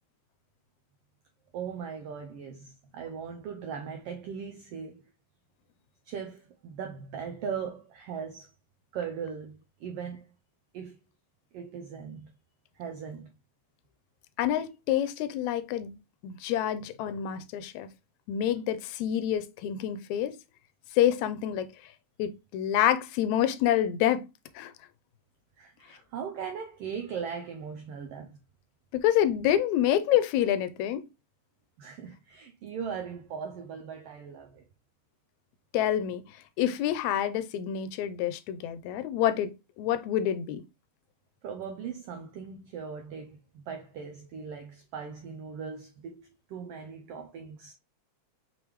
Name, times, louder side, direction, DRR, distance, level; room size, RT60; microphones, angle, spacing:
voice 1, 1.5-5.1 6.0-8.5 8.9-10.3 10.7-11.0 11.5-12.3 12.7-13.3 25.6-28.4 31.8-34.6 41.4-47.7, right 6 dB, 80° right, 1.3 m, -39 dB
voice 2, 14.4-15.9 16.2-17.9 18.3-20.4 21.0-21.7 22.2-24.3 24.6-24.7 28.9-31.0 35.7-36.2 36.6-40.6, left 11 dB, 80° left, 1.8 m, -27 dB
5.3 x 3.3 x 3.0 m
omnidirectional pair, 3.3 m